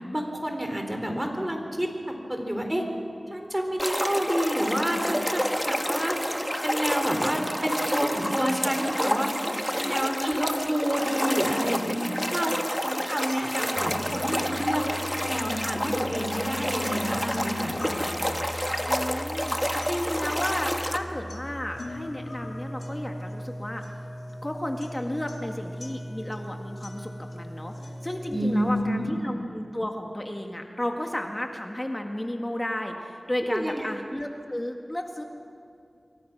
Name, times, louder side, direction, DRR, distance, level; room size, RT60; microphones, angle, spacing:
voice 1, 0.1-2.8 3.3-9.3 9.8-12.0 12.3-12.6 12.8-14.8 15.3-17.8 28.3-29.1 33.5-33.9, equal, 15° right, 3 dB, 3.9 m, -29 dB
sound 1, 3.8-21.0, equal, 5° left, 1.3 m, -29 dB
voice 2, 5.0-5.3 9.7-10.1 11.9-12.6 17.2-17.5 18.9-23.8 24.4-35.2, left 1 dB, 20° left, 3 dB, 1.9 m, -33 dB
sound 2, 12.8-28.8, left 1 dB, 75° left, 2.1 m, -39 dB
28.0 x 22.5 x 6.1 m, 2.5 s
wide cardioid pair, 65°, 0 cm